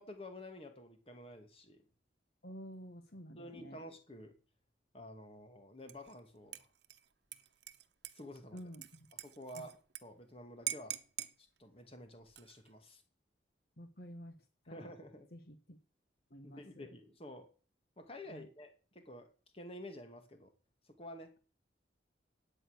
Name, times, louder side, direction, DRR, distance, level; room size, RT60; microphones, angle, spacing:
voice 1, 0.0-1.8 3.4-4.3 4.9-6.7 8.1-8.6 9.2-11.0 11.4-13.0 14.7-15.3 16.4-17.5 18.0-19.3 19.5-20.5 20.9-21.4, left 1 dB, 30° left, 6 dB, 2.3 m, -50 dB
voice 2, 2.4-3.8 8.5-9.1 9.5-9.6 13.8-14.4 14.7-14.9 15.3-15.8 16.3-16.9 18.3-18.5, equal, 55° left, 8 dB, 1.4 m, -50 dB
Dishes pots and pans / Liquid, 5.9-6.2 6.5-10.0 10.3-10.4 10.7-11.3 12.2-12.7, right 13 dB, 70° right, 1.0 m, -44 dB
12.5 x 9.0 x 6.6 m, 0.38 s
head